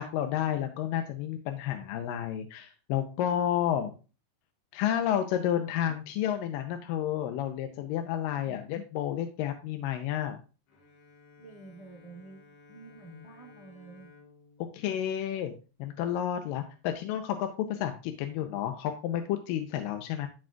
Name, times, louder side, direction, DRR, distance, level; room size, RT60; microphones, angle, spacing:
voice 1, 0.0-3.9 4.7-10.4 14.7-15.5 15.8-20.3, left 10 dB, 85° left, 6 dB, 2.3 m, -31 dB
voice 2, 8.3-8.6 11.4-14.1, right 3 dB, 30° right, -2 dB, 0.6 m, -50 dB
Bowed string instrument, 10.7-16.1, left 3 dB, 65° left, 2.9 m, -57 dB
13.0 x 5.1 x 2.4 m, 0.33 s
omnidirectional pair, 4.0 m